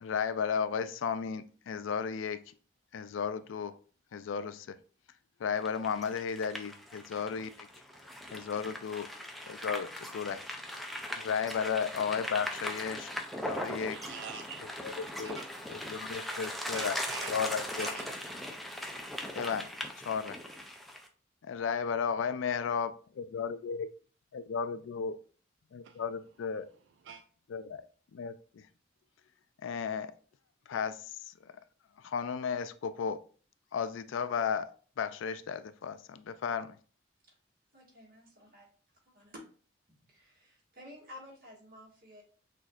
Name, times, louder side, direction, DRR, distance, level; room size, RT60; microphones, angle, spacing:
voice 1, 0.0-2.5 2.9-3.8 4.1-4.8 5.4-7.7 8.3-9.1 9.5-10.4 11.2-14.0 14.8-15.4 15.7-17.0 17.3-17.9 19.3-19.7 20.0-20.4 21.5-23.9 24.3-25.2 25.7-26.7 27.5-27.8 28.1-28.7 29.6-30.1 30.7-31.6 32.0-33.2 33.7-34.7 35.0-36.8, left 6 dB, 85° left, 0.4 m, -34 dB
sound 1, 5.6-21.1, left 1 dB, ahead, 0.4 m, -39 dB
voice 2, 13.6-17.4 17.7-18.1 25.8-26.0 27.0-27.2, right 7 dB, 70° right, 0.3 m, -46 dB
voice 3, 37.7-38.7 39.0-39.4 40.1-42.2, left 1 dB, 50° right, 1.8 m, -52 dB
6.1 x 2.7 x 2.4 m
head